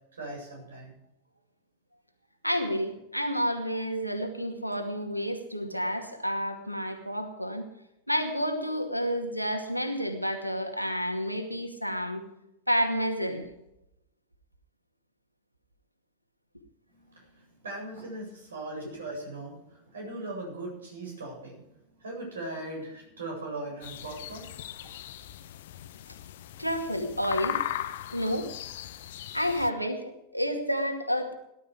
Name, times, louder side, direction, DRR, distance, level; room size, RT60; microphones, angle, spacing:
voice 1, 0.1-0.9 16.9-21.6 22.0-24.5, right 2 dB, 70° right, 0 dB, 7.6 m, -39 dB
voice 2, 2.4-7.6 8.1-12.2 12.7-13.5 26.6-27.6 28.1-28.5 29.3-31.3, equal, 90° left, 4 dB, 2.2 m, -30 dB
sound 1, 23.8-29.7, left 12 dB, 55° left, 1.0 m, -38 dB
18.0 x 12.0 x 5.0 m, 0.85 s
figure-of-eight pair, 90°, 0 cm